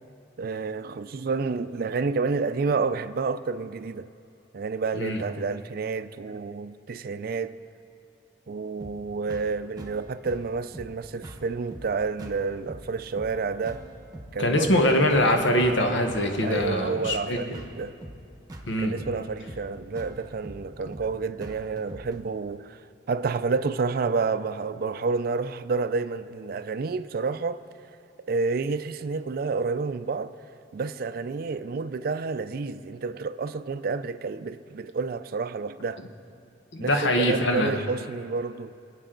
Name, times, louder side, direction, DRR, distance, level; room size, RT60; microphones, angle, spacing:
voice 1, 0.4-4.1 4.5-7.6 8.5-13.8 14.3-14.8 16.4-18.0 18.8-22.8 23.1-27.6 28.3-30.4 30.7-36.0 36.8-38.7, right 4 dB, 50° right, 0.4 m, -29 dB
sound 1, 8.8-22.2, right 1 dB, 20° right, 1.0 m, -44 dB
voice 2, 14.4-17.4 18.7-18.9 36.7-37.8, left 1 dB, 85° left, 1.2 m, -23 dB
22.5 x 8.1 x 3.9 m
head